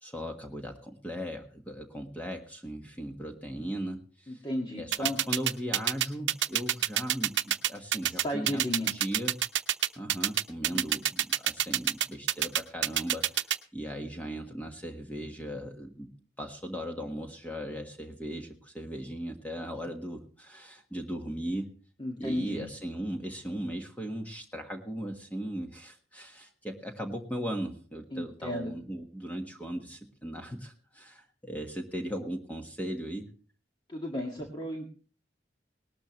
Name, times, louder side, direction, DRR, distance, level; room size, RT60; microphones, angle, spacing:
voice 1, 0.0-4.5 4.8-9.4 10.0-16.1 16.4-21.7 22.2-33.3, equal, 10° left, 3 dB, 1.5 m, -38 dB
voice 2, 4.3-5.2 8.1-8.9 10.7-10.8 22.0-22.7 28.1-28.7 33.9-34.9, left 1 dB, 25° left, 0 dB, 2.0 m, -34 dB
sound 1, 4.9-13.6, right 12 dB, 90° right, 0.8 m, -26 dB
19.0 x 13.0 x 3.1 m, 0.41 s
head